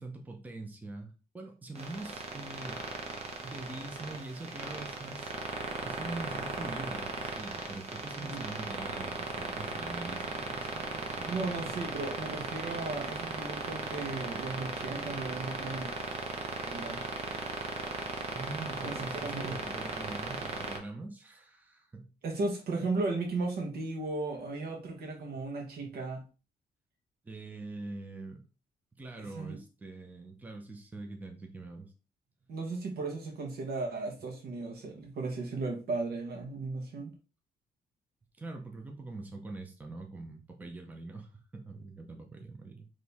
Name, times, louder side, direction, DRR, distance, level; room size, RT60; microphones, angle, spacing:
voice 1, 0.0-2.8 3.4-5.3 5.8-11.6 18.3-22.1 25.3-25.5 25.8-25.9 27.2-28.4 28.9-31.9 38.4-42.9, right 2 dB, 10° right, 0.6 m, -43 dB
sound 1, 1.8-20.8, right 3 dB, 40° right, 1.0 m, -37 dB
voice 2, 11.2-15.9 16.6-17.0 18.8-19.0 19.2-19.6 22.2-26.2 29.2-29.6 32.5-37.1, right 3 dB, 70° right, 1.4 m, -35 dB
4.5 x 3.1 x 3.4 m
cardioid pair, 175°, 16 cm